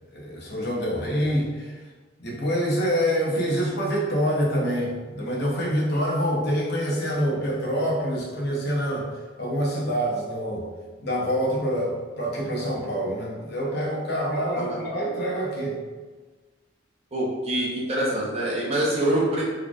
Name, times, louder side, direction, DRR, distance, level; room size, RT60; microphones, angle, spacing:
voice 1, 0.1-1.8 2.2-9.1 9.4-10.7 11.0-15.8, equal, 60° left, -3 dB, 0.9 m, -26 dB
voice 2, 17.1-19.5, right 1 dB, 30° right, -5 dB, 0.8 m, -25 dB
3.9 x 3.2 x 2.4 m, 1.3 s
head